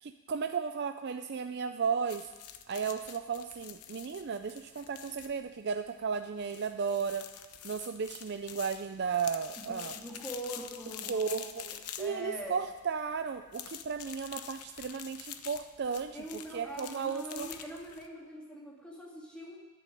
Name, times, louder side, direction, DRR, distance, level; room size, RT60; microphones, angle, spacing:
voice 1, 0.0-2.3 2.7-7.3 7.6-9.9 11.1-11.4 12.0-17.5, right 6 dB, 50° right, 8 dB, 0.4 m, -34 dB
sound 1, 2.1-18.1, left 10 dB, 90° left, 0.8 m, -47 dB
voice 2, 9.6-12.6 16.1-19.6, right 1 dB, 5° left, -3 dB, 2.4 m, -43 dB
10.5 x 8.2 x 9.9 m, 1.2 s
head